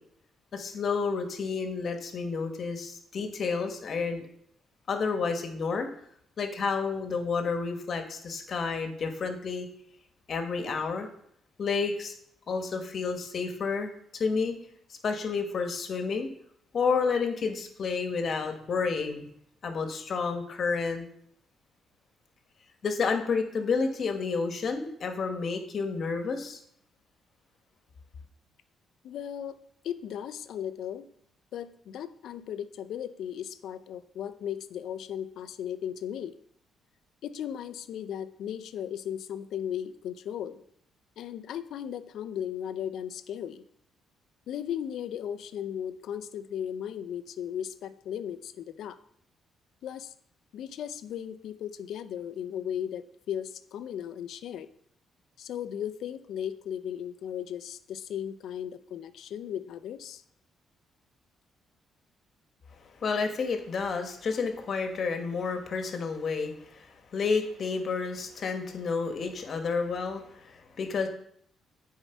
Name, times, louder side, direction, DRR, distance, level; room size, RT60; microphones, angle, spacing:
voice 1, 0.5-4.2 4.9-5.9 6.4-9.7 10.3-11.1 11.6-12.1 12.5-14.5 15.0-16.3 16.7-19.2 19.6-21.0 22.8-26.6 63.0-66.9 67.1-71.1, left 5 dB, 50° left, 5 dB, 1.5 m, -30 dB
voice 2, 29.0-29.6 29.8-31.1 31.5-36.3 37.2-40.6 41.2-43.6 44.5-49.0 49.8-50.1 50.5-54.7 55.4-60.2, left 9 dB, 75° left, 11 dB, 0.6 m, -36 dB
9.8 x 4.7 x 4.6 m, 0.69 s
cardioid pair, 90°, 0 cm